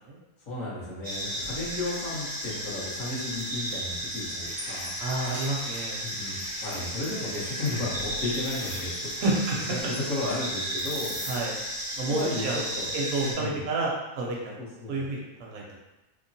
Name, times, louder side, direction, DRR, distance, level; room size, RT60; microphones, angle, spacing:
voice 1, 0.5-5.0 6.0-9.1 9.7-11.4 12.1-12.5 12.7-12.9 13.2-13.6 14.6-15.0, left 2 dB, 60° left, -9 dB, 1.4 m, -34 dB
sound 1, 1.0-13.3, equal, 20° right, 0.6 m, -34 dB
sound 2, 4.4-9.8, right 1 dB, 75° left, 1.3 m, -47 dB
voice 2, 5.0-6.0 9.2-9.6 9.8-9.9 11.3-11.5 12.0-14.5 14.9-15.8, right 2 dB, 70° right, -3 dB, 1.1 m, -30 dB
3.6 x 2.0 x 2.6 m, 1.0 s
omnidirectional pair, 1.6 m